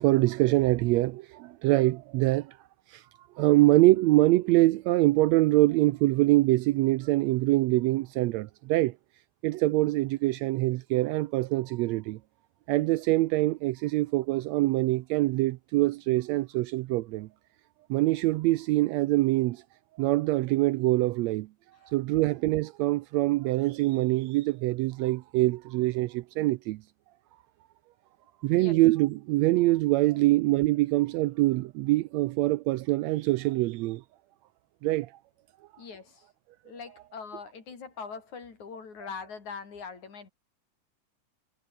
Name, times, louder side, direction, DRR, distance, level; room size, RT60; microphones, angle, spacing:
voice 1, 0.0-2.6 2.9-3.0 3.4-8.9 9.4-12.2 12.7-17.3 17.9-19.6 20.0-21.5 21.8-26.8 28.4-34.0 34.8-35.1, right 18 dB, 80° right, 1.6 m, -24 dB
voice 2, 28.5-28.8 35.8-36.3 36.7-40.3, left 5 dB, 70° left, 5.6 m, -42 dB
omnidirectional pair, 3.5 m